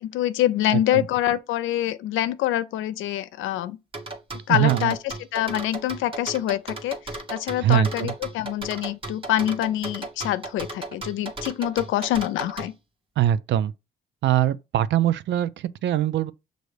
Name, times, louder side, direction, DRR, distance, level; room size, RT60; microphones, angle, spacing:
voice 1, 0.0-3.8 4.5-7.0 7.3-12.7, left 13 dB, 85° left, 0.4 m, -25 dB
voice 2, 0.7-1.1 4.5-4.9 7.6-8.1 13.2-13.7 14.2-16.3, right 12 dB, 65° right, 0.4 m, -22 dB
sound 1, 3.9-12.7, right 2 dB, 25° right, 1.1 m, -35 dB
6.3 x 2.6 x 3.2 m
cardioid pair, 90°, 20 cm